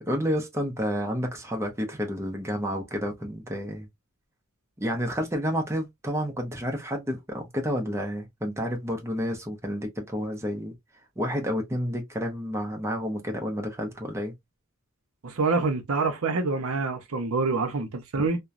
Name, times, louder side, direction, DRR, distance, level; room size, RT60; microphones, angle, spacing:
voice 1, 0.0-3.9 4.8-10.8 11.2-14.3 18.2-18.3, equal, 15° right, 0.7 m, -30 dB
voice 2, 15.2-18.4, right 3 dB, 70° right, 0.7 m, -26 dB
2.9 x 2.2 x 2.4 m
head